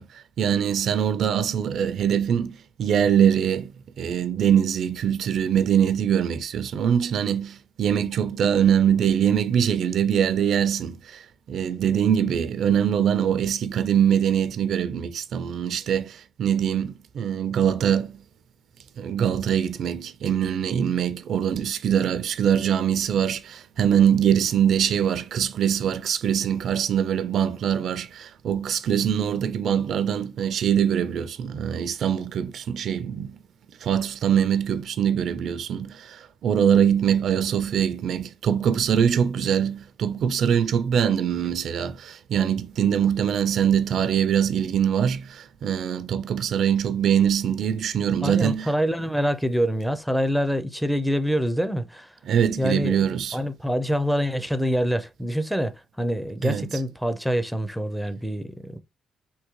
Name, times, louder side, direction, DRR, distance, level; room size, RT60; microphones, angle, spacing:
voice 1, 0.0-3.7 4.0-11.2 11.5-18.2 19.0-33.4 33.8-48.7 52.3-53.4 56.4-56.7, right 8 dB, 70° right, 0.4 m, -23 dB
voice 2, 48.2-52.2 52.6-58.8, equal, ahead, 0.5 m, -26 dB
3.6 x 2.7 x 3.0 m
cardioid pair, 90°, 0 cm